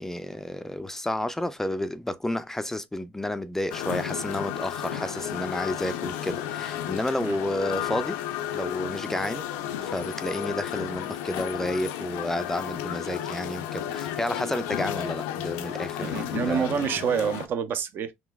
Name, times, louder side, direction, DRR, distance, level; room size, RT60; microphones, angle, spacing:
voice 1, 0.0-8.2 8.5-9.5 9.8-16.9, left 1 dB, 10° left, 0.3 m, -31 dB
sound 1, 3.7-17.5, left 10 dB, 75° left, 0.4 m, -33 dB
voice 2, 16.0-18.1, right 7 dB, 50° right, 0.5 m, -27 dB
3.7 x 2.5 x 2.2 m
supercardioid pair, 80°, 5 cm